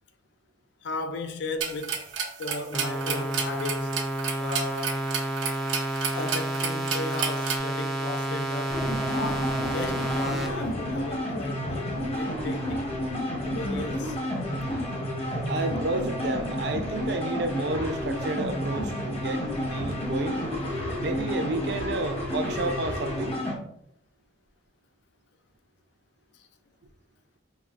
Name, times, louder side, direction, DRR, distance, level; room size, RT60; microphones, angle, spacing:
voice 1, 0.8-2.0 2.4-4.0 4.4-5.1 6.1-8.8 9.1-12.8 13.4-14.2 26.3-26.5, left 3 dB, 65° left, 0.4 m, -36 dB
sound 1, 1.6-7.6, right 6 dB, 85° right, 0.9 m, -32 dB
sound 2, 2.7-10.5, right 1 dB, ahead, 0.5 m, -30 dB
sound 3, 8.7-23.6, equal, 35° left, 0.9 m, -30 dB
voice 2, 15.5-20.4 21.0-23.4, right 2 dB, 60° right, 0.4 m, -31 dB
5.2 x 2.9 x 2.4 m
head